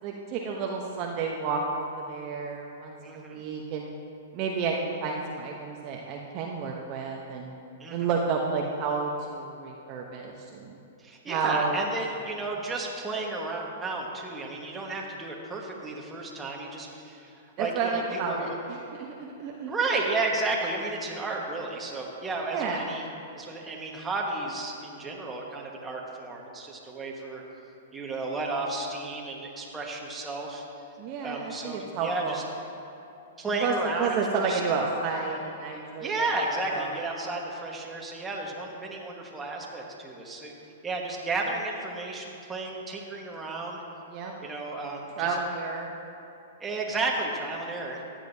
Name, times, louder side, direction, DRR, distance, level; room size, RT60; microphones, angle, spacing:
voice 1, 0.0-3.9 4.3-7.5 7.9-10.8 11.3-11.8 17.6-19.7 22.5-22.8 31.0-32.4 33.6-36.9 44.1-44.3 45.2-45.9, right 4 dB, 40° right, 0 dB, 0.8 m, -31 dB
voice 2, 3.0-3.4 7.8-8.1 11.0-18.6 19.7-23.1 23.3-27.4 27.9-30.6 31.2-32.4 33.4-34.6 36.0-40.5 40.8-43.8 44.4-45.4 46.6-48.1, right 3 dB, 15° right, -1 dB, 1.5 m, -33 dB
14.5 x 9.0 x 2.8 m, 2.9 s
hypercardioid pair, 125°, 0 cm